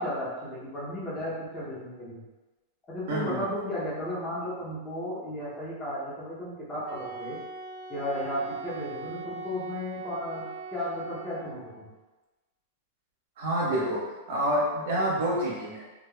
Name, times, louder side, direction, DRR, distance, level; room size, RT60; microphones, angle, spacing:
voice 1, 0.0-2.2 2.9-7.4 7.9-11.9, left 1 dB, 15° left, -8 dB, 0.6 m, -34 dB
voice 2, 3.1-3.4 13.4-15.8, right 1 dB, 65° right, -6 dB, 1.1 m, -28 dB
Wind instrument woodwind instrument, 6.8-11.7, right 4 dB, 35° right, 0.5 m, -41 dB
3.3 x 2.2 x 2.2 m, 1.2 s
supercardioid pair, 170°, 0 cm